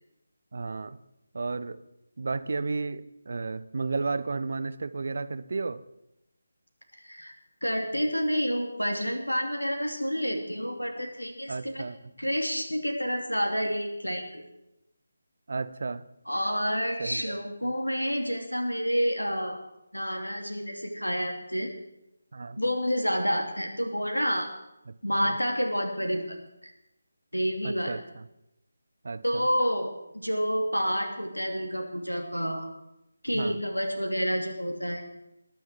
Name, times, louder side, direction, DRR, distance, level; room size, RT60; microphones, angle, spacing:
voice 1, 0.5-1.0 1.3-1.8 2.2-5.8 11.5-12.1 15.5-16.0 17.0-17.4 22.3-22.6 24.9-25.0 25.2-25.3 27.6-28.3 29.0-29.5 33.3-33.6, right 3 dB, 50° right, 15 dB, 0.9 m, -33 dB
voice 2, 7.0-7.3 7.6-11.8 12.2-14.4 16.3-19.6 19.9-21.7 22.6-24.5 25.0-26.4 26.6-26.7 27.3-27.9 29.2-32.7 33.2-35.0, equal, 90° left, 3 dB, 2.8 m, -29 dB
20.0 x 7.4 x 7.6 m, 0.89 s
figure-of-eight pair, 155°, 0 cm